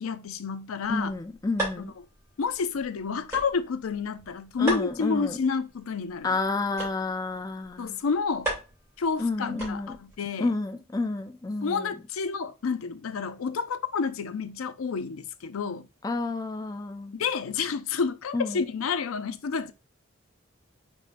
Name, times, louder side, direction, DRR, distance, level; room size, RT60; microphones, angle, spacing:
voice 1, 0.0-1.1 2.4-6.4 7.8-8.5 9.0-10.5 11.6-15.9 17.1-19.7, left 5 dB, 90° left, 0.5 m, -29 dB
sound 1, 0.8-10.1, right 2 dB, 15° right, 2.8 m, -39 dB
voice 2, 0.9-1.9 4.6-5.4 6.2-8.0 9.2-10.0 10.4-11.9 16.0-17.2 18.3-18.7, left 3 dB, 15° left, 0.3 m, -30 dB
5.3 x 3.6 x 2.5 m
head